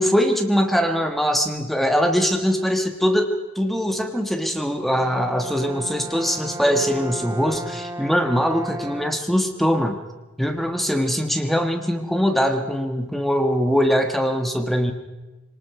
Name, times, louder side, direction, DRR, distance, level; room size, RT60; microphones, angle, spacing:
voice 1, 0.0-10.0 10.4-14.9, equal, ahead, 5 dB, 1.3 m, -22 dB
Brass instrument, 4.9-9.4, right 1 dB, 15° right, 1.1 m, -35 dB
23.5 x 19.5 x 5.9 m, 1.1 s
head